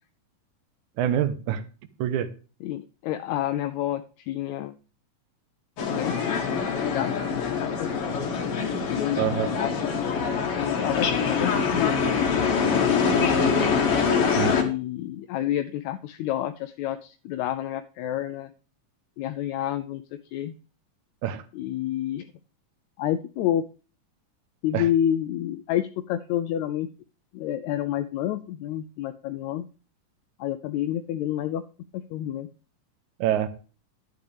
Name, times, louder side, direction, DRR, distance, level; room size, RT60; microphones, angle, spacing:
voice 1, 1.0-1.6 2.0-2.3 9.2-9.5 14.4-14.5 21.2-21.4 24.7-24.9 33.2-33.5, right 10 dB, 75° right, 12 dB, 2.2 m, -25 dB
voice 2, 2.6-4.7 5.9-6.2 6.5-7.1 7.4-8.1 8.9-10.0 10.6-12.8 13.2-13.4 14.4-18.5 19.2-20.0 20.3-20.5 21.5-22.3 23.0-23.7 24.6-26.9 27.3-29.7 30.4-31.6 31.9-32.5, left 11 dB, 80° left, 9 dB, 1.7 m, -29 dB
sound 1, 5.8-14.6, left 6 dB, 50° left, 2.2 m, -24 dB
11.5 x 8.5 x 3.4 m, 0.36 s
omnidirectional pair, 3.7 m